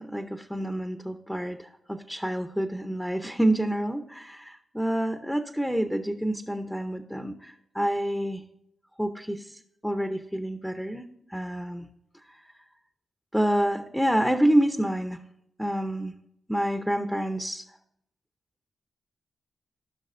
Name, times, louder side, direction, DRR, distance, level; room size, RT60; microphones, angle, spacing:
voice 1, 0.0-8.4 9.0-11.1 11.3-11.9 13.3-15.2 15.6-16.1 16.5-17.6, right 1 dB, ahead, 6 dB, 0.7 m, -28 dB
16.0 x 5.9 x 2.6 m, 0.78 s
cardioid pair, 60°, 0 cm